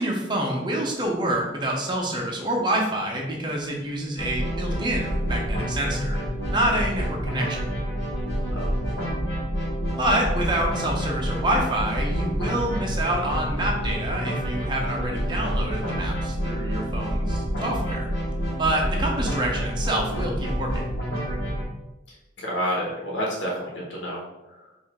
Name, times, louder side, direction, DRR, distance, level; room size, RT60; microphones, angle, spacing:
voice 1, 0.0-7.6 10.0-18.1 18.6-20.9, right 1 dB, 25° right, -1 dB, 0.8 m, -27 dB
sound 1, 4.2-21.7, equal, 55° left, 1.3 m, -28 dB
voice 2, 8.5-9.1 22.1-24.7, equal, 80° left, -4 dB, 1.2 m, -30 dB
4.9 x 2.6 x 3.6 m, 0.98 s
head